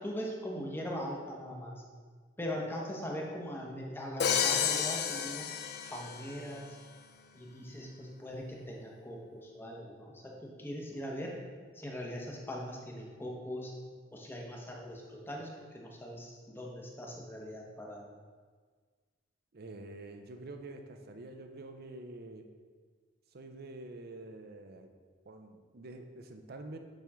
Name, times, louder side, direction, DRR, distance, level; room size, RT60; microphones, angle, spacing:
voice 1, 0.0-1.8 2.4-5.6 5.9-6.8 7.3-11.3 11.7-13.7 14.1-18.1, equal, 10° left, -1 dB, 1.0 m, -41 dB
Crash cymbal, 4.2-6.4, left 7 dB, 60° left, 0.5 m, -31 dB
voice 2, 19.5-22.5 23.3-24.9 25.3-26.8, right 2 dB, 55° right, 6 dB, 0.6 m, -47 dB
7.4 x 5.3 x 3.6 m, 1.5 s
head